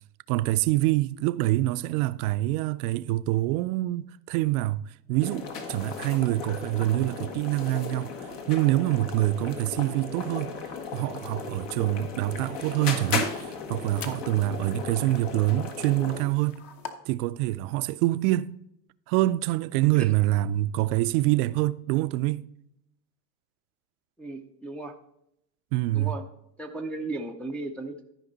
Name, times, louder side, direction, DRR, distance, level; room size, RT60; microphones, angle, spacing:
voice 1, 0.3-10.5 10.9-16.6 17.1-18.5 19.1-22.4 25.7-26.1, right 16 dB, 65° right, 0.5 m, -26 dB
sound 1, 5.2-16.3, left 5 dB, 70° left, 1.6 m, -36 dB
sound 2, 11.1-16.9, left 7 dB, 45° left, 1.1 m, -48 dB
voice 2, 24.2-24.9 25.9-26.2 26.6-28.0, right 2 dB, 5° left, 0.3 m, -35 dB
13.0 x 5.2 x 3.9 m
supercardioid pair, 105°, 49 cm